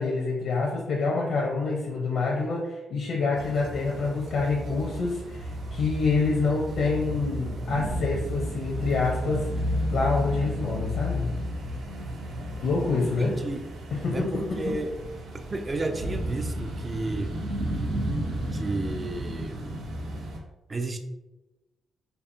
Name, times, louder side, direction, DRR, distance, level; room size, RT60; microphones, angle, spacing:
voice 1, 0.0-9.5 9.9-11.4 12.6-13.3 14.0-14.7, left 3 dB, 70° left, -3 dB, 0.8 m, -27 dB
sound 1, 3.4-20.4, equal, 90° right, 0.8 m, -33 dB
voice 2, 13.0-13.7 14.1-14.9 15.5-17.5 18.5-19.8 20.7-21.0, right 2 dB, 30° right, 6 dB, 0.5 m, -32 dB
4.5 x 2.7 x 2.7 m, 1.1 s
cardioid pair, 100°, 0 cm